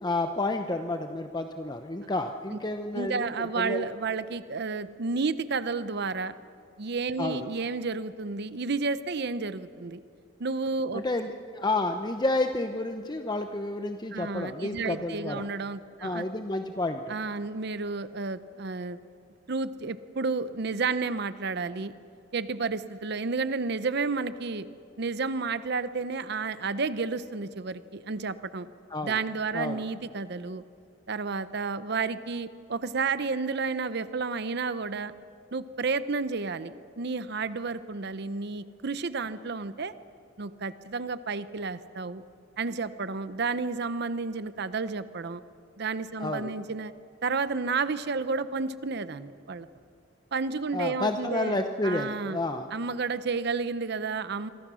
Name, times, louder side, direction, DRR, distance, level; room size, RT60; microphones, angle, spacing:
voice 1, 0.0-3.3 3.6-3.9 7.2-7.5 10.9-15.5 16.0-17.2 28.9-29.2 29.5-29.8 46.2-46.5 50.7-52.7, left 2 dB, 25° left, 6 dB, 0.8 m, -30 dB
voice 2, 2.9-6.3 6.8-10.0 10.4-11.0 14.1-16.2 17.1-19.0 19.5-21.9 22.3-24.7 25.0-28.7 29.0-30.6 31.1-35.1 35.5-39.9 40.4-42.2 42.6-45.4 45.8-46.9 47.2-49.7 50.3-51.6 51.8-52.4 52.7-54.5, right 4 dB, 60° right, 14 dB, 0.7 m, -31 dB
27.0 x 24.0 x 6.3 m, 2.4 s
head